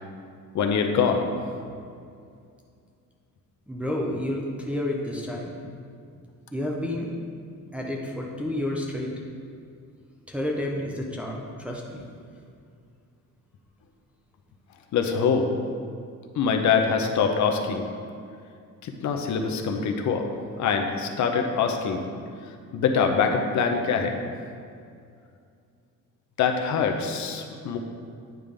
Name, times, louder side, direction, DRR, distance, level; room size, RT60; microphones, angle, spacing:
voice 1, 0.5-1.3 14.9-15.5 16.3-17.9 18.8-22.0 22.7-24.2 26.4-27.8, left 6 dB, 60° left, 4 dB, 0.7 m, -24 dB
voice 2, 3.7-5.5 6.5-7.1 7.7-9.1 10.3-12.0, left 1 dB, 5° right, -2 dB, 0.5 m, -30 dB
9.1 x 3.4 x 5.2 m, 2.4 s
cardioid pair, 170°, 33 cm